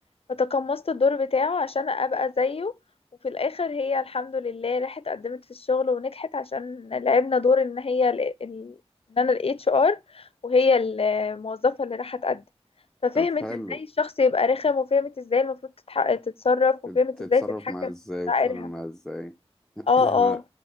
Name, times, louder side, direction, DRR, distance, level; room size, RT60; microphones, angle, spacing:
voice 1, 0.3-2.7 3.2-8.7 9.1-12.4 13.0-15.6 15.9-17.4 17.8-17.9 18.3-18.7 19.9-20.4, left 4 dB, 60° left, 0.5 m, -24 dB
voice 2, 13.1-13.8 16.9-19.3 19.8-20.4, left 1 dB, 5° left, 0.7 m, -35 dB
6.3 x 5.0 x 3.4 m
wide cardioid pair, 45°, 11 cm